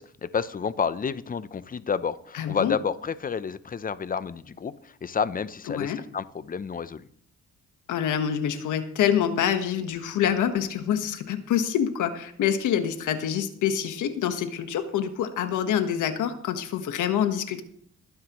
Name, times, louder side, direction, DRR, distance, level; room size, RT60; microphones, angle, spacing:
voice 1, 0.0-4.7 5.0-7.1, left 6 dB, 30° left, 15 dB, 0.6 m, -30 dB
voice 2, 2.3-2.8 5.7-6.0 7.9-17.6, left 9 dB, 80° left, 8 dB, 1.4 m, -26 dB
19.5 x 9.6 x 3.1 m, 0.63 s
cardioid pair, 90°, 30 cm